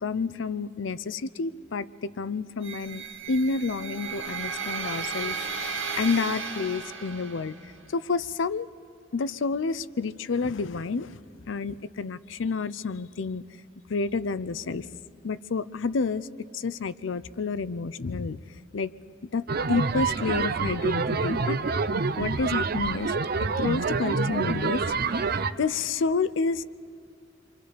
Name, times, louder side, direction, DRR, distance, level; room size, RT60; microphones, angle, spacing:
voice 1, 0.0-3.0 3.3-7.5 7.9-8.7 9.1-11.2 11.5-13.4 13.9-14.9 15.2-16.3 16.5-18.4 18.7-18.9 19.3-21.6 22.2-23.1 23.6-24.9 25.6-26.6, left 4 dB, 80° left, 15 dB, 0.5 m, -29 dB
sound 1, 2.6-7.7, right 6 dB, 80° right, 2.0 m, -34 dB
sound 2, 19.5-25.5, right 4 dB, 55° right, 0.6 m, -27 dB
28.5 x 24.5 x 5.1 m, 2.5 s
head